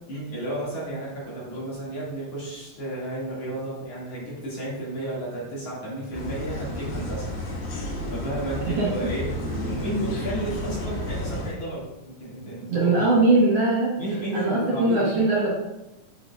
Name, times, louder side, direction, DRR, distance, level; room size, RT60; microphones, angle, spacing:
voice 1, 0.1-7.4 7.7-9.3 9.6-13.1 14.0-15.1, right 1 dB, 50° left, -7 dB, 3.1 m, -32 dB
sound 1, 6.1-11.5, left 1 dB, 90° left, 3.0 m, -31 dB
voice 2, 12.7-14.0 14.3-15.5, right 2 dB, 60° right, -5 dB, 1.8 m, -21 dB
7.7 x 5.9 x 2.4 m, 0.96 s
omnidirectional pair, 3.7 m